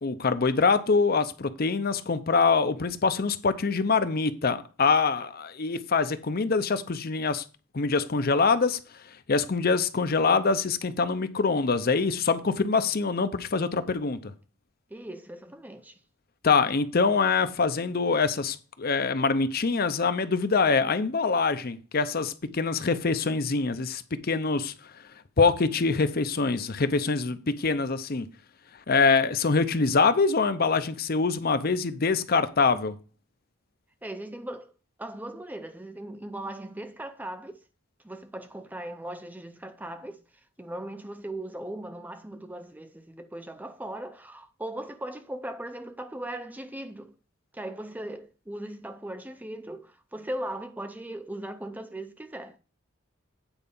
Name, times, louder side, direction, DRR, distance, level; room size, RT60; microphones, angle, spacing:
voice 1, 0.0-7.4 7.7-8.8 9.3-14.3 16.4-24.7 25.4-28.3 28.9-32.9, left 4 dB, 50° left, 0.6 m, -24 dB
voice 2, 14.9-16.0 34.0-34.7 35.0-37.6 38.0-40.2 40.6-47.1 47.5-52.6, right 1 dB, 10° right, 0.5 m, -38 dB
8.9 x 4.6 x 5.4 m
head